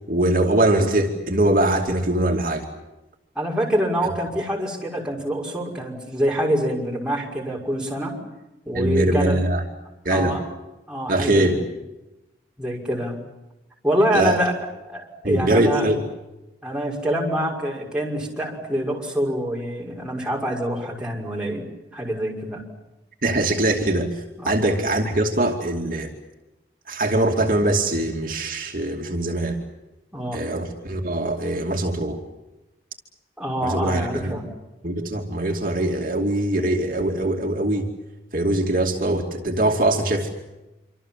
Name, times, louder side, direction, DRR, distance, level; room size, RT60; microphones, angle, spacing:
voice 1, 0.1-2.6 8.7-9.6 10.0-10.4 11.1-11.5 14.1-14.4 15.2-16.0 23.2-26.1 26.9-29.6 30.3-32.2 33.6-34.3 34.8-37.9 38.3-40.3, right 1 dB, 50° right, 1 dB, 2.6 m, -22 dB
voice 2, 3.4-8.2 8.7-9.4 10.1-10.4 10.9-11.6 12.6-13.2 13.8-14.6 14.9-15.9 16.6-21.7 21.9-22.6 24.4-24.5 30.1-30.4 33.4-34.4, equal, 5° right, -3 dB, 5.9 m, -25 dB
27.0 x 26.0 x 7.5 m, 0.97 s
head